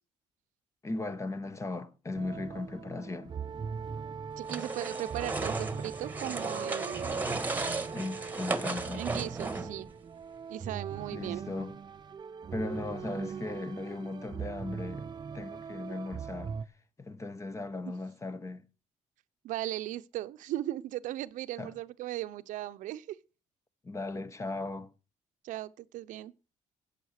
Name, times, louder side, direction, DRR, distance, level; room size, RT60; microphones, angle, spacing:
voice 1, 0.8-3.3 7.9-9.1 11.1-11.8 12.5-15.1 15.3-16.6 17.0-18.6 21.6-21.7 23.8-24.9, left 2 dB, 25° left, 1.2 m, -37 dB
sound 1, 2.1-16.6, right 6 dB, 35° right, 0.7 m, -40 dB
sound 2, 4.4-9.9, right 3 dB, 15° right, 1.6 m, -35 dB
voice 2, 4.4-7.3 8.9-9.9 10.5-11.5 19.4-23.2 25.4-26.3, right 14 dB, 90° right, 0.7 m, -37 dB
14.5 x 8.4 x 6.6 m
cardioid pair, 120°, 13 cm